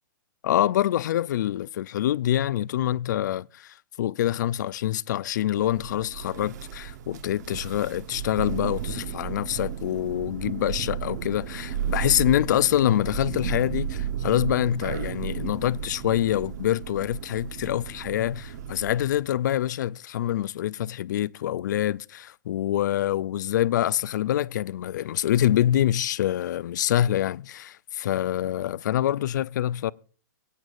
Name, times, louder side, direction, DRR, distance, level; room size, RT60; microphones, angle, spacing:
voice 1, 0.4-29.9, left 12 dB, 60° left, 0.4 m, -26 dB
Thunder, 5.6-19.2, right 8 dB, 60° right, 1.1 m, -34 dB
23.5 x 8.8 x 2.5 m
hypercardioid pair, 125°, 11 cm